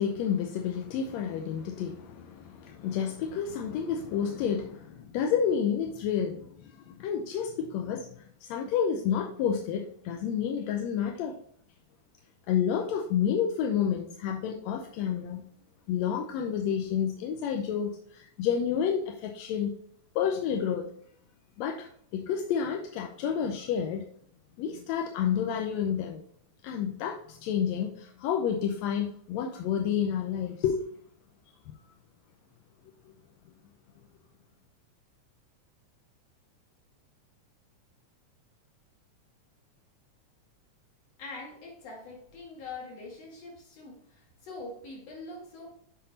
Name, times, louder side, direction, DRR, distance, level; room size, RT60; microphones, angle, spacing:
voice 1, 0.0-11.4 12.5-15.4 15.9-19.8 20.2-20.9 21.6-24.1 24.6-26.2 26.6-30.8 31.7-31.8, left 8 dB, 75° left, 2 dB, 1.8 m, -30 dB
voice 2, 41.2-45.7, left 3 dB, 60° left, -1 dB, 3.0 m, -43 dB
7.5 x 4.5 x 4.0 m, 0.64 s
omnidirectional pair, 3.4 m